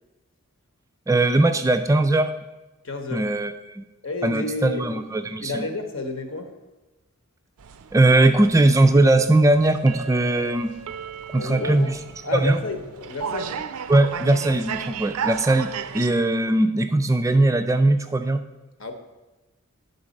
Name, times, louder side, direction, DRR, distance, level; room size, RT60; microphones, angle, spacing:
voice 1, 1.1-2.3 3.1-3.8 4.2-5.6 7.9-10.7 11.3-12.0 12.3-12.6 13.9-18.4, right 2 dB, 15° right, 8 dB, 0.3 m, -19 dB
voice 2, 2.8-3.2 4.0-5.0 5.4-6.5 11.3-12.0 12.2-13.6 18.8-18.9, left 2 dB, 65° left, 5 dB, 1.0 m, -30 dB
sound 1, 7.6-16.1, right 7 dB, 90° right, 0.4 m, -35 dB
11.0 x 4.0 x 5.2 m, 1.1 s
head